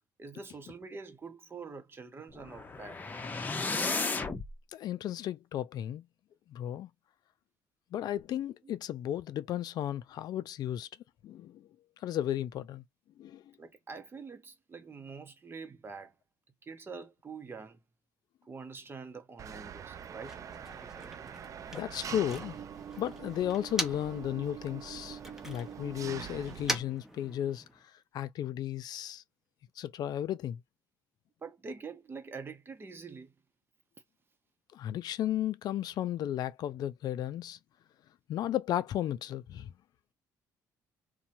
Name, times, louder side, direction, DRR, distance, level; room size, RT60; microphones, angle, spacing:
voice 1, 0.2-3.0 8.6-8.7 13.6-16.1 16.6-17.8 18.4-20.4 31.4-33.3, right 4 dB, 30° right, 0.8 m, -45 dB
sound 1, 2.3-4.5, left 3 dB, 25° left, 0.8 m, -34 dB
voice 2, 4.7-6.0 6.5-6.9 7.9-10.9 11.2-11.7 12.0-12.8 13.2-13.4 21.7-22.6 23.0-25.2 25.4-27.6 28.1-29.2 29.8-30.6 34.7-37.6 38.3-39.7, left 11 dB, 65° left, 0.4 m, -34 dB
Engine, 19.4-26.8, right 8 dB, 45° right, 0.4 m, -44 dB
Motor vehicle (road), 19.8-24.3 24.6-27.8, equal, 5° right, 1.0 m, -42 dB
2.7 x 2.2 x 2.7 m
supercardioid pair, 80°, 8 cm